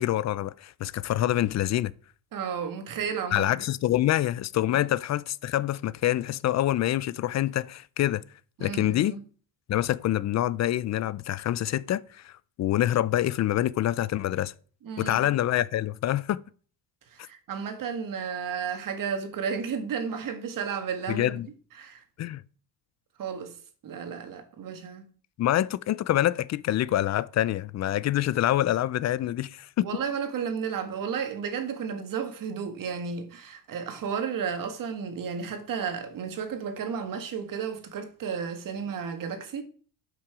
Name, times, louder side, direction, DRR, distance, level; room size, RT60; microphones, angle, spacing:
voice 1, 0.0-1.9 3.3-8.2 8.6-9.2 9.7-12.3 12.6-14.5 15.0-16.4 21.1-21.5 22.2-22.4 25.4-29.9, left 13 dB, 40° left, 0.4 m, -26 dB
voice 2, 2.3-3.6 4.7-4.9 8.6-9.2 14.8-15.2 17.1-21.4 21.8-22.0 23.2-23.5 23.8-25.1 29.8-39.6, right 6 dB, 45° right, 1.9 m, -33 dB
12.0 x 6.1 x 4.9 m
cardioid pair, 145°, 45 cm